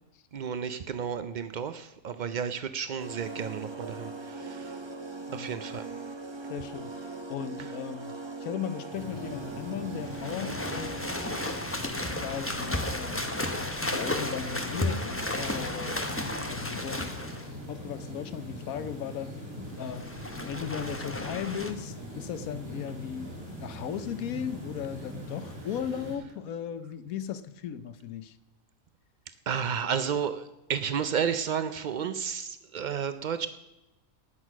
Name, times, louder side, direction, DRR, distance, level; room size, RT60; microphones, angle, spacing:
voice 1, 0.3-4.8 5.3-5.9 29.5-33.5, right 7 dB, 80° right, 11 dB, 0.4 m, -32 dB
sound 1, 3.0-11.7, right 3 dB, 20° right, 1.0 m, -40 dB
voice 2, 5.3-5.6 6.5-8.1 8.4-11.0 11.8-13.4 13.8-19.3 19.8-28.4, left 8 dB, 80° left, 13 dB, 1.2 m, -37 dB
sound 2, 8.9-26.2, left 1 dB, 45° right, 3.5 m, -41 dB
sound 3, 10.0-17.5 19.8-21.7, left 1 dB, 10° left, 0.9 m, -33 dB
18.5 x 6.4 x 6.1 m, 0.99 s
omnidirectional pair, 1.5 m